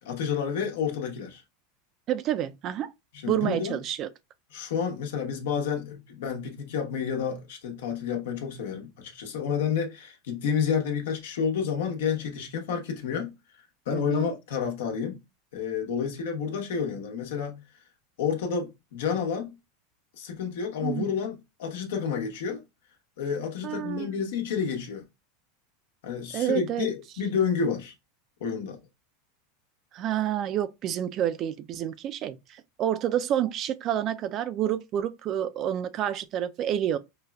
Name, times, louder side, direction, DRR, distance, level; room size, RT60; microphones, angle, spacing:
voice 1, 0.0-1.4 3.2-3.8 4.5-13.3 13.9-15.2 15.5-17.6 18.2-19.6 20.2-22.6 23.2-25.1 26.0-27.9 28.4-28.8, left 7 dB, 75° left, 0.9 m, -30 dB
voice 2, 2.1-2.9 3.3-4.1 13.9-14.3 20.8-21.1 23.6-24.1 26.3-26.9 29.9-37.0, right 11 dB, 45° right, 0.4 m, -29 dB
4.9 x 2.2 x 2.3 m
hypercardioid pair, 110°, 0 cm